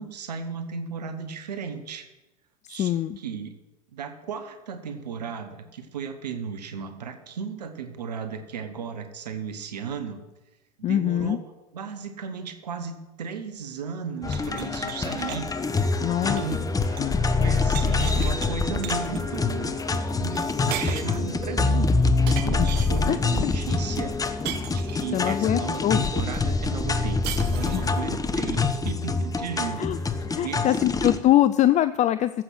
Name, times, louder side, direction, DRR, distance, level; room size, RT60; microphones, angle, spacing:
voice 1, 0.0-2.1 2.7-3.6 3.9-10.2 10.8-11.4 11.7-15.5 16.0-16.7 17.4-21.9 22.3-24.2 24.7-30.0 30.4-30.8, right 6 dB, 85° right, 8 dB, 1.3 m, -35 dB
voice 2, 2.8-3.2 10.8-11.4 16.0-16.4 17.0-17.8 22.6-22.7 23.0-23.2 23.4-23.5 25.1-26.0 27.7-27.9 29.8-30.0 30.3-32.4, left 12 dB, 35° left, 14 dB, 0.5 m, -23 dB
sound 1, 14.2-31.2, left 3 dB, 15° left, 1.1 m, -25 dB
sound 2, 14.3-17.2 17.4-18.5 18.8-19.2 20.3-20.4 20.7-21.3 22.3-23.1 24.4-25.3 27.2-28.0, right 9 dB, 55° right, 1.5 m, -37 dB
15.5 x 7.9 x 6.2 m, 1.0 s
hypercardioid pair, 80°, 20 cm